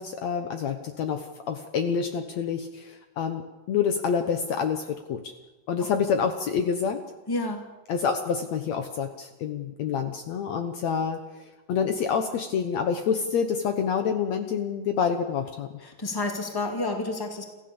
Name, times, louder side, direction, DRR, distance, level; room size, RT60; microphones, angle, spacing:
voice 1, 0.0-3.4 3.7-5.2 5.7-7.0 7.9-11.4 11.7-15.7, left 6 dB, 65° left, 6 dB, 2.1 m, -27 dB
voice 2, 7.3-7.7 15.8-17.4, left 2 dB, 5° left, 3 dB, 2.2 m, -30 dB
27.0 x 15.0 x 7.1 m, 1.2 s
omnidirectional pair, 3.7 m